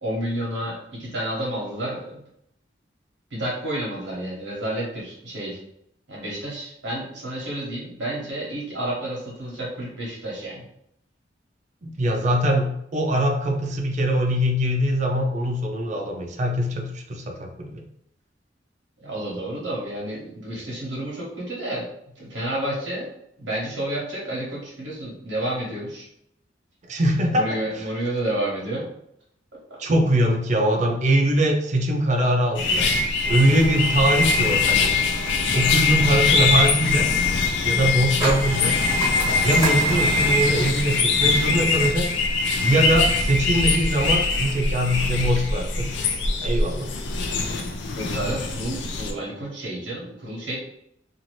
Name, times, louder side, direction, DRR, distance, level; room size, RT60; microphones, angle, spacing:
voice 1, 0.0-2.2 3.3-5.6 6.1-10.6 19.0-21.9 22.2-23.1 23.4-26.1 27.3-28.9 29.7-29.8 47.9-50.5, right 1 dB, 80° right, -6 dB, 1.0 m, -30 dB
voice 2, 11.8-17.5 26.9-27.5 27.8-27.9 29.8-32.9 33.3-34.9 35.5-37.1 37.6-38.8 39.4-42.1 42.6-45.9 46.3-46.9, right 1 dB, 40° right, 2 dB, 0.5 m, -22 dB
sound 1, 32.5-49.1, left 4 dB, 70° left, 0.4 m, -22 dB
sound 2, 33.2-40.3, right 1 dB, 15° right, 0.8 m, -33 dB
2.6 x 2.5 x 3.0 m, 0.75 s
head